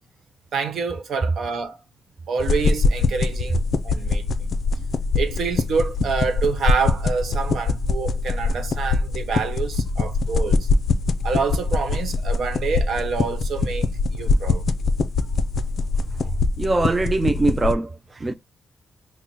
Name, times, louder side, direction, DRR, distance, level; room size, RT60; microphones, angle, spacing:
voice 1, 0.5-1.8 2.3-4.5 5.1-10.7 11.2-13.9 14.1-14.6, right 5 dB, 70° right, 1.0 m, -27 dB
sound 1, 2.4-17.8, left 3 dB, 55° left, 0.4 m, -23 dB
voice 2, 16.6-18.3, right 2 dB, 20° right, 0.3 m, -22 dB
6.0 x 2.1 x 2.7 m
wide cardioid pair, 145°, 0 cm